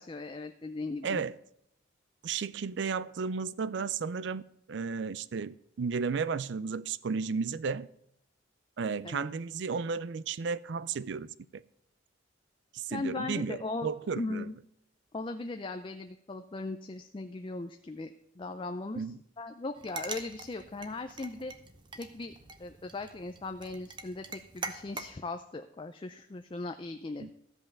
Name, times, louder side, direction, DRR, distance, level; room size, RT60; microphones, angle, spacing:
voice 1, 0.0-1.2 9.0-9.3 12.9-13.9 14.2-14.6 15.1-19.0 19.4-21.5 21.9-22.3 22.6-27.3, left 3 dB, 25° left, 0.4 m, -38 dB
voice 2, 1.0-1.3 2.2-4.4 4.7-7.9 8.8-11.6 12.7-14.5 19.0-19.2 27.2-27.3, right 5 dB, 60° right, 0.4 m, -33 dB
sound 1, 19.8-25.1, right 3 dB, 25° right, 0.7 m, -44 dB
13.5 x 5.4 x 7.1 m
head